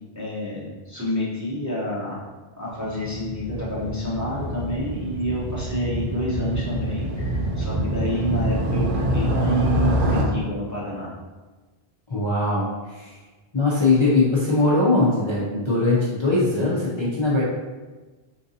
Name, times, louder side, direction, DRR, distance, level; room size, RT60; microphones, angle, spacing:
voice 1, 0.1-2.2 2.6-11.1, equal, 20° right, -8 dB, 0.6 m, -29 dB
Motorcycle, 2.7-10.2, right 1 dB, 65° right, 0.7 m, -25 dB
voice 2, 12.1-13.1 13.5-17.4, left 2 dB, 35° left, -8 dB, 0.5 m, -21 dB
3.9 x 2.5 x 2.6 m, 1.3 s
omnidirectional pair, 1.0 m